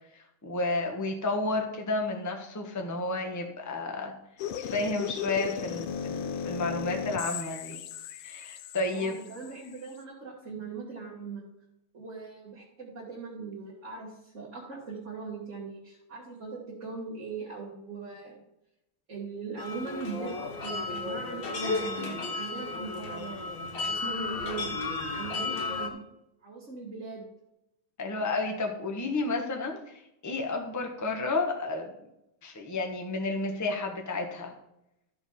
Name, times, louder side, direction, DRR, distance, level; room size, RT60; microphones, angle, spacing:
voice 1, 0.1-4.1 4.6-7.8 8.2-9.2 28.0-31.9 32.4-34.5, left 3 dB, 10° left, 2 dB, 0.9 m, -31 dB
sound 1, 4.4-10.0, left 7 dB, 80° left, 1.5 m, -36 dB
voice 2, 8.9-11.4 11.9-18.3 19.1-23.6 23.9-24.7 25.1-26.0 26.4-27.2, right 4 dB, 35° right, -5 dB, 2.2 m, -40 dB
sound 2, 19.6-25.9, left 3 dB, 65° left, 2.1 m, -33 dB
13.5 x 4.7 x 5.7 m, 0.85 s
omnidirectional pair, 2.3 m